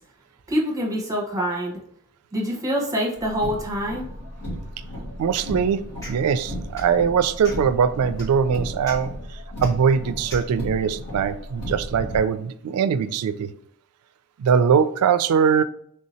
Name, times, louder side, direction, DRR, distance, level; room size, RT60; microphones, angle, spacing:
voice 1, 0.5-1.8 2.3-4.1, equal, 15° right, -2 dB, 0.9 m, -25 dB
Car, 3.2-12.2, equal, 90° left, 1.5 m, -35 dB
voice 2, 5.2-5.8 6.1-9.1 9.6-13.5 14.4-15.6, right 7 dB, 80° right, 12 dB, 0.3 m, -21 dB
sound 1, 5.3-5.5 6.0-6.2 6.7-7.0 7.4-7.7 8.2-8.3 8.8-9.0 9.6-9.7 10.3-10.5, equal, 15° left, 1.4 m, -37 dB
3.4 x 2.7 x 4.1 m, 0.66 s
head